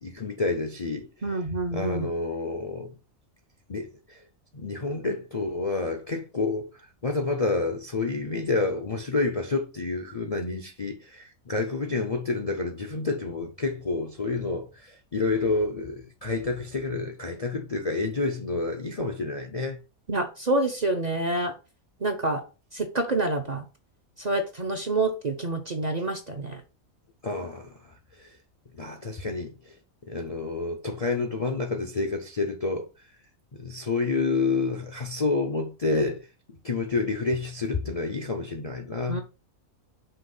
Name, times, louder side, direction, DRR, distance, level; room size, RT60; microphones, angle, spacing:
voice 1, 0.0-1.1 1.7-2.9 3.7-4.2 4.5-19.8 27.2-28.4 28.7-29.8 30.1-32.9 33.6-36.3 36.6-39.2, left 3 dB, 35° left, 0.6 m, -29 dB
voice 2, 1.2-2.1 20.1-21.5 22.0-22.4 22.7-23.6 24.2-26.6 39.1-39.2, right 2 dB, 35° right, 0.7 m, -27 dB
5.7 x 3.0 x 5.4 m
omnidirectional pair, 1.5 m